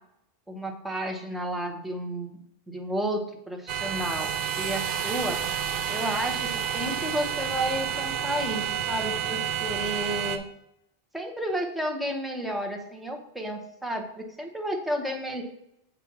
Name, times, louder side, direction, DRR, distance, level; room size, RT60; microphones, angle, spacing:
voice 1, 0.5-2.4 2.7-4.3 4.6-5.4 5.9-10.4 11.1-15.4, equal, ahead, 3 dB, 0.7 m, -32 dB
sound 1, 3.7-10.4, right 8 dB, 60° right, 0.7 m, -30 dB
7.3 x 2.9 x 5.9 m, 0.79 s
omnidirectional pair, 1.0 m